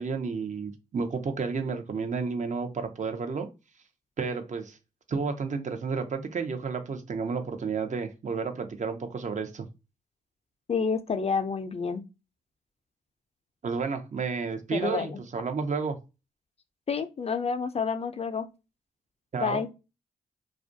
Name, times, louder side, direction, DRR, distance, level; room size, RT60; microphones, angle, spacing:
voice 1, 0.0-3.5 4.2-4.8 5.1-9.7 13.6-16.0 19.3-19.6, right 5 dB, 50° right, 0.6 m, -31 dB
voice 2, 10.7-12.0 14.7-15.2 16.9-18.5 19.4-19.7, left 5 dB, 40° left, 0.4 m, -29 dB
2.4 x 2.1 x 2.6 m
supercardioid pair, 40°, 17 cm